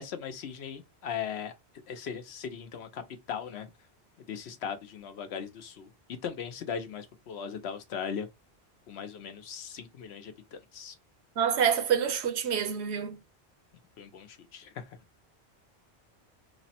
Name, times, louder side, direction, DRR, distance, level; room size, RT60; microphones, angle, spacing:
voice 1, 0.0-1.5 1.9-3.0 3.3-3.7 4.3-8.3 8.9-11.0 14.0-15.0, left 7 dB, 80° left, 0.9 m, -38 dB
voice 2, 11.4-13.2, right 8 dB, 85° right, 1.0 m, -27 dB
3.2 x 2.1 x 4.1 m
omnidirectional pair, 1.1 m